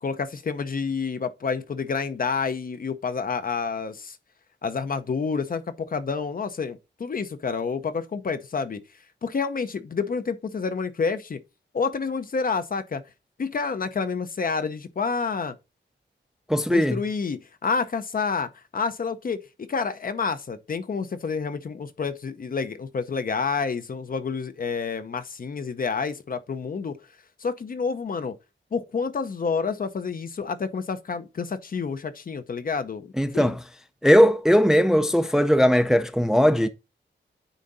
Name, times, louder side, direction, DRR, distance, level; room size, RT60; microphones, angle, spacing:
voice 1, 0.0-4.2 4.6-8.8 9.2-11.4 11.7-13.0 13.4-15.6 16.7-27.0 27.4-28.4 28.7-33.6, left 5 dB, 45° left, 0.7 m, -29 dB
voice 2, 16.5-17.0 33.2-33.6 34.0-36.7, equal, 5° right, 0.4 m, -19 dB
9.1 x 3.8 x 4.0 m
wide cardioid pair, 160°, 20 cm